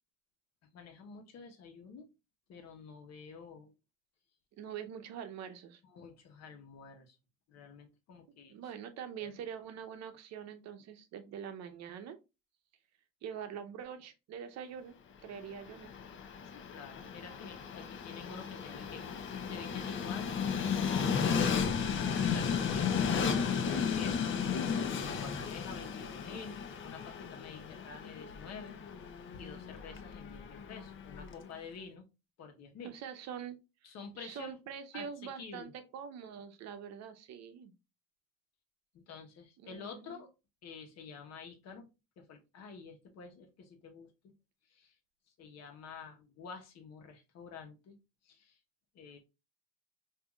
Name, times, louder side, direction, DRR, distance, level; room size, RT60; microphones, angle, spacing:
voice 1, 0.7-2.1 2.5-3.7 5.8-7.2 7.5-8.5 9.2-9.3 16.4-19.0 19.4-21.5 22.3-24.3 25.0-28.8 29.4-32.0 32.4-32.9 33.8-34.6 34.9-35.1 35.4-35.7 38.9-40.3 40.6-41.9 42.2-44.3 44.7-45.0 45.4-48.0 48.2-48.6 48.9-49.2, left 5 dB, 60° left, 1.1 m, -49 dB
voice 2, 4.6-5.8 8.5-12.2 13.2-15.0 15.2-15.9 32.8-37.7 39.6-40.2, right 8 dB, 65° right, 0.8 m, -44 dB
Train, 15.4-31.5, left 6 dB, 40° left, 0.7 m, -34 dB
5.3 x 2.7 x 2.4 m
cardioid pair, 110°, 29 cm